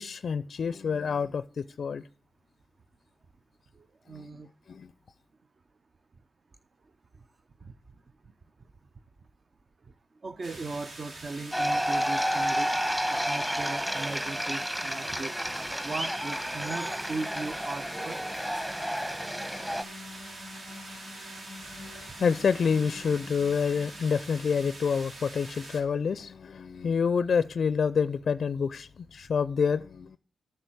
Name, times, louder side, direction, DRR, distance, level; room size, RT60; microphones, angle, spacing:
voice 1, 0.0-2.0 4.1-4.2 4.7-4.9 21.7-30.2, left 6 dB, 65° left, 0.4 m, -28 dB
voice 2, 3.7-4.5 7.6-7.7 10.2-12.7 13.1-15.4 15.8-18.2, right 3 dB, 50° right, 0.6 m, -38 dB
sound 1, 10.4-25.8, right 2 dB, 70° right, 2.6 m, -45 dB
sound 2, 11.5-19.8, equal, 10° right, 1.1 m, -30 dB
sound 3, 16.9-25.4, left 1 dB, 85° right, 3.5 m, -49 dB
8.3 x 6.4 x 7.8 m
supercardioid pair, 50°, 0 cm